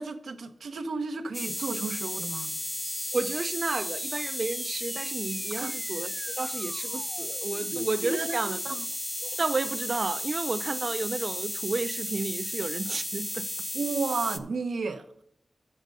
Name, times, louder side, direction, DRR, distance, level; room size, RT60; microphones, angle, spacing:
voice 1, 0.0-2.5 5.6-5.7 8.0-8.8 13.7-15.2, right 4 dB, 85° right, 0.7 m, -33 dB
sound 1, 1.3-14.4, left 1 dB, 15° left, 0.5 m, -34 dB
sound 2, 2.8-7.8, right 3 dB, 60° right, 1.0 m, -48 dB
voice 2, 3.1-8.8 9.2-13.5, right 3 dB, 45° right, 0.4 m, -32 dB
6.7 x 6.3 x 6.6 m
wide cardioid pair, 130°, 0 cm